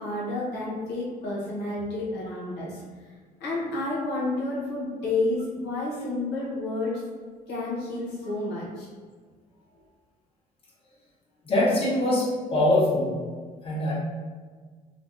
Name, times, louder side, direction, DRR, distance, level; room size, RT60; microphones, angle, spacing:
voice 1, 0.0-2.8 3.4-7.0 7.5-8.9, left 2 dB, 80° left, -6 dB, 0.9 m, -30 dB
voice 2, 11.4-13.2 13.6-13.9, left 1 dB, 35° left, -7 dB, 1.1 m, -23 dB
3.4 x 2.1 x 2.6 m, 1.5 s
cardioid pair, 110°, 17 cm